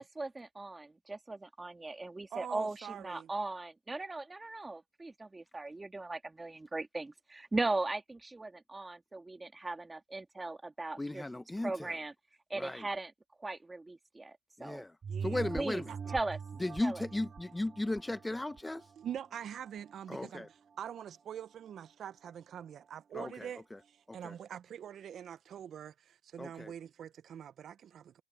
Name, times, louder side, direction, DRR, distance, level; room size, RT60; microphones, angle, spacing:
voice 1, 0.0-11.3 11.6-12.1 12.5-13.1 13.4-14.8 15.5-16.4 16.8-17.0, right 2 dB, 20° right, 2.4 m, -38 dB
voice 2, 2.3-3.3 15.1-16.1 19.0-28.2, right 9 dB, 65° right, 0.5 m, -45 dB
voice 3, 11.0-12.0 12.5-12.9 14.6-14.9 15.2-15.9 16.6-18.8 20.1-20.5 23.1-23.8 24.1-24.3 26.4-26.7, left 2 dB, 15° left, 0.7 m, -36 dB
sound 1, 15.0-20.0 20.4-20.5, right 6 dB, 45° right, 1.9 m, -43 dB
cardioid pair, 90°, 0 cm